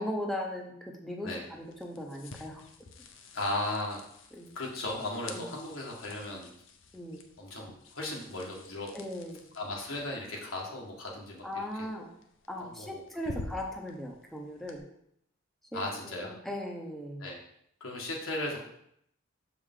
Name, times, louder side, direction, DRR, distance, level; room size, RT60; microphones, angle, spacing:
voice 1, 0.0-2.6 4.4-4.5 5.3-5.5 6.9-7.2 8.9-9.5 11.4-12.1 12.5-14.8 15.7-17.2, left 1 dB, ahead, -1 dB, 0.7 m, -38 dB
sound 1, 1.2-14.8, left 3 dB, 65° left, 0.7 m, -50 dB
voice 2, 3.3-4.0 4.5-6.5 7.4-8.9 9.5-11.5 11.8-11.9 12.6-13.0 15.7-16.3 17.2-17.4 17.8-18.6, left 2 dB, 85° left, -1 dB, 1.6 m, -36 dB
6.7 x 4.8 x 3.7 m, 0.72 s
head